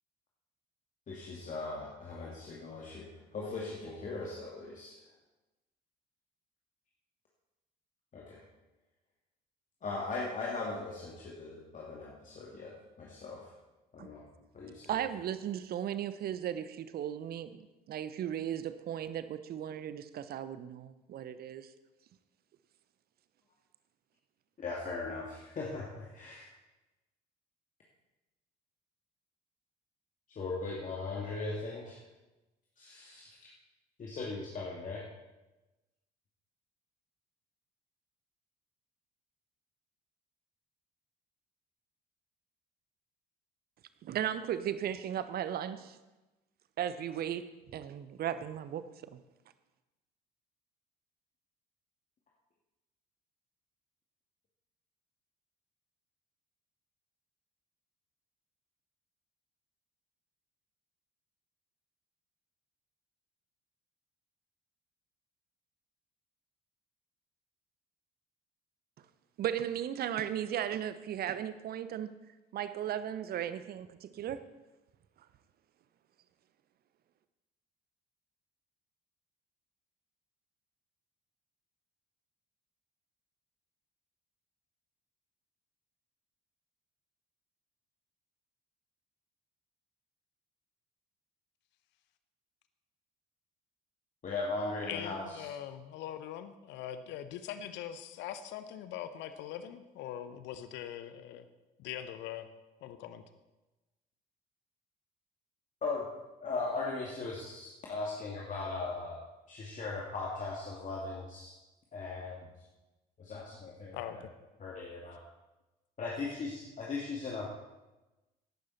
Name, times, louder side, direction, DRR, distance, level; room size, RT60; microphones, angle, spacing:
voice 1, 1.1-5.0 8.1-8.4 9.8-13.5 13.9-14.3 14.5-15.0 24.6-26.5 30.3-32.1 32.8-33.5 34.0-35.0 94.2-95.5 105.8-106.1 106.4-109.2 109.5-111.5 111.9-112.5 113.2-114.2 114.6-115.2 116.0-117.6, left 3 dB, 35° left, -4 dB, 2.5 m, -39 dB
voice 2, 14.9-17.6 17.9-21.7 44.0-46.0 46.8-49.2 69.4-72.2 72.5-74.4, right 10 dB, 45° right, 13 dB, 0.9 m, -36 dB
voice 3, 94.9-101.5 101.8-102.5 102.8-103.2 113.9-114.3, left 10 dB, 60° left, 11 dB, 0.9 m, -42 dB
16.5 x 11.5 x 4.2 m, 1.1 s
figure-of-eight pair, 55°, 21 cm